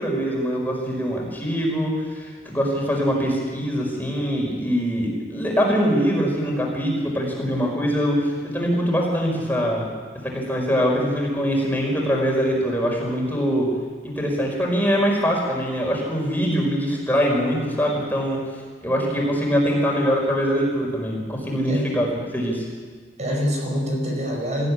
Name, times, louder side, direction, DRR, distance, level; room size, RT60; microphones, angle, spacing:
voice 1, 0.0-9.9 10.2-13.7 14.0-18.4 18.8-22.1 22.3-22.7, equal, 10° left, -1 dB, 5.0 m, -23 dB
voice 2, 23.2-24.7, equal, 40° right, 0 dB, 5.0 m, -25 dB
24.0 x 15.5 x 9.9 m, 1.5 s
head